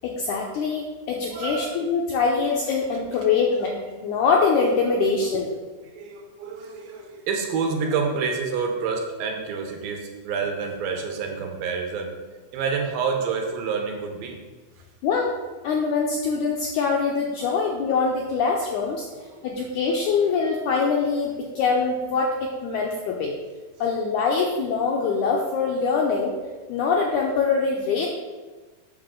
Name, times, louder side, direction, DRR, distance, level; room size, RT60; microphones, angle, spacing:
voice 1, 0.0-5.5 15.0-15.3 15.6-19.1 19.4-23.4 23.8-26.4 26.7-28.1, left 5 dB, 85° left, -1 dB, 1.8 m, -23 dB
voice 2, 1.3-1.7 5.9-12.1 12.5-14.4 17.4-17.6 19.1-19.6, right 5 dB, 80° right, 2 dB, 2.6 m, -28 dB
7.6 x 6.3 x 3.7 m, 1.3 s
omnidirectional pair, 4.2 m